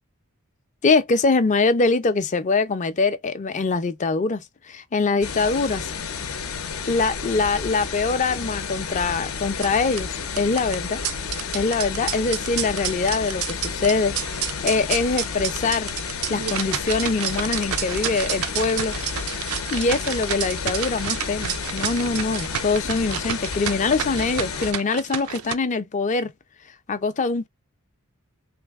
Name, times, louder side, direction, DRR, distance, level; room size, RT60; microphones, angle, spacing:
voice 1, 0.8-4.4 4.7-5.9 6.9-11.0 11.5-14.1 14.6-15.9 16.3-18.9 19.7-26.3 26.9-27.5, left 4 dB, 35° left, 0.4 m, -23 dB
sound 1, 5.2-24.7, left 6 dB, 75° left, 0.6 m, -31 dB
sound 2, 9.5-25.5, right 9 dB, 75° right, 0.4 m, -31 dB
3.2 x 2.0 x 3.4 m
head